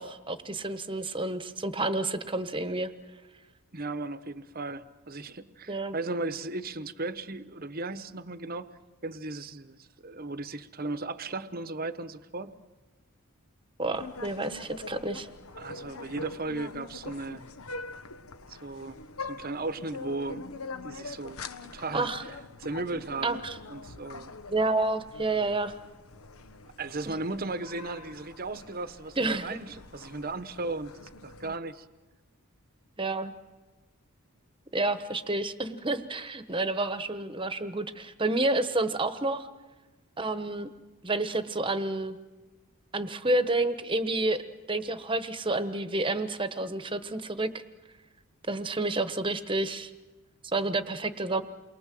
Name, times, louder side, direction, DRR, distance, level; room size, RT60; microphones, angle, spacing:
voice 1, 0.0-2.9 5.7-6.0 13.8-15.3 21.9-22.2 23.2-23.6 24.5-25.7 27.1-27.2 29.2-29.6 33.0-33.3 34.7-39.5 40.2-40.7 41.0-42.2 42.9-44.4 44.7-47.6 48.5-49.9 50.5-51.4, right 2 dB, 25° right, 10 dB, 1.2 m, -29 dB
voice 2, 3.7-12.5 15.5-17.4 18.5-20.4 20.8-23.4 23.7-24.3 26.8-30.9 31.2-31.9, right 2 dB, 40° right, 12 dB, 1.0 m, -36 dB
sound 1, 13.9-31.6, left 3 dB, 75° left, 1.2 m, -44 dB
29.0 x 23.0 x 7.7 m, 1.2 s
head